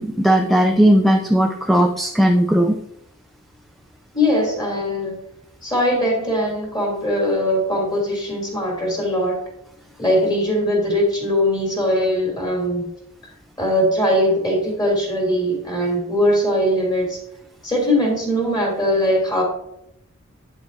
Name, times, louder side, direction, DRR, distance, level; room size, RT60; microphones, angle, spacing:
voice 1, 0.0-2.8, right 1 dB, ahead, 4 dB, 0.4 m, -16 dB
voice 2, 4.1-5.2 5.6-9.4 10.0-12.9 13.6-17.2 17.6-19.4, equal, 20° left, -2 dB, 3.0 m, -20 dB
8.6 x 7.8 x 2.7 m, 0.78 s
head